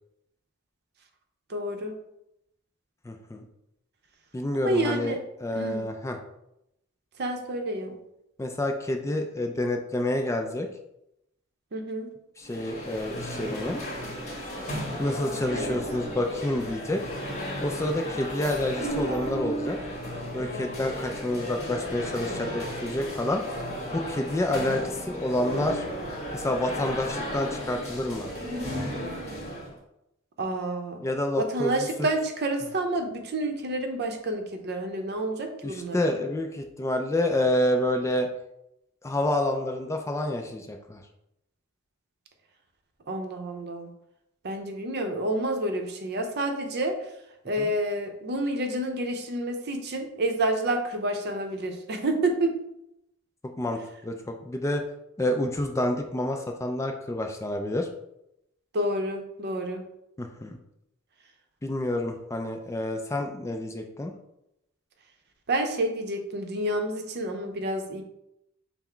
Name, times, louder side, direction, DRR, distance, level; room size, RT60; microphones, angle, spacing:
voice 1, 1.5-1.9 4.6-5.2 5.5-5.8 7.2-8.0 11.7-12.1 15.5-15.8 30.4-31.0 31.4-36.1 43.1-43.9 44.4-47.0 47.4-52.5 58.7-59.8 65.5-68.0, right 1 dB, 50° right, 5 dB, 0.6 m, -29 dB
voice 2, 3.0-3.5 4.3-6.2 8.4-10.7 12.4-13.8 15.0-17.0 17.6-19.8 20.3-23.4 23.9-25.9 26.3-28.3 31.0-32.1 35.6-38.3 39.0-41.0 47.6-47.7 53.6-54.8 55.2-57.9 60.2-60.6 61.6-64.1, left 1 dB, 15° left, 4 dB, 0.3 m, -28 dB
sound 1, 12.4-29.7, equal, 35° left, 1.3 m, -34 dB
5.8 x 2.0 x 4.4 m, 0.84 s
head